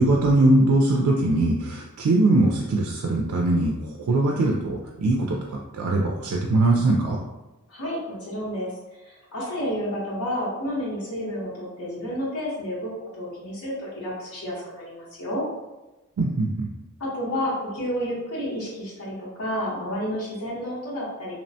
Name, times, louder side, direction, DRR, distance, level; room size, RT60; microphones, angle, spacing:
voice 1, 0.0-7.2 16.2-16.7, right 2 dB, 75° right, -1 dB, 0.3 m, -21 dB
voice 2, 7.7-15.4 17.0-21.4, equal, 85° left, -6 dB, 1.0 m, -30 dB
2.9 x 2.1 x 2.6 m, 1.0 s
head